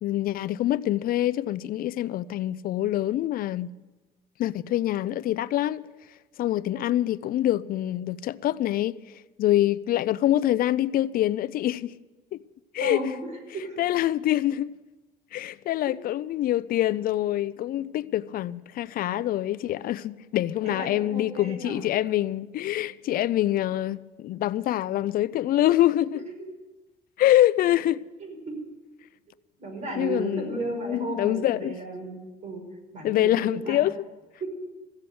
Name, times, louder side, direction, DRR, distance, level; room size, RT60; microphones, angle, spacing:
voice 1, 0.0-3.7 4.4-5.9 6.4-9.0 9.4-12.0 12.3-12.4 12.7-13.0 13.8-14.7 15.3-26.2 27.2-28.0 30.0-31.8 33.0-34.0, left 13 dB, 60° left, 0.5 m, -25 dB
voice 2, 12.8-13.8 15.9-16.0 20.6-21.8 28.2-28.6 29.6-32.2 32.4-32.6 32.9-33.8 34.4-34.5, right 1 dB, 45° right, 5.4 m, -34 dB
15.0 x 7.6 x 9.4 m
cardioid pair, 110°, 17 cm